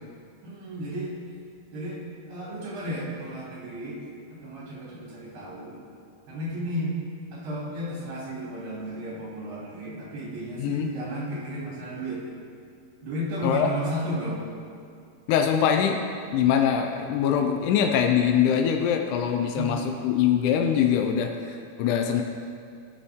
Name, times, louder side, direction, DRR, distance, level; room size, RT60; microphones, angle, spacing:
voice 1, 0.4-1.1 1.7-2.0 2.3-4.0 4.3-5.8 6.3-6.9 7.3-12.2 13.0-14.4 19.5-19.8, equal, 70° right, -7 dB, 4.6 m, -33 dB
voice 2, 10.6-10.9 13.4-13.7 15.3-16.0 16.3-22.2, left 8 dB, 80° left, 4 dB, 1.9 m, -23 dB
17.5 x 6.9 x 3.6 m, 2.3 s
omnidirectional pair, 4.1 m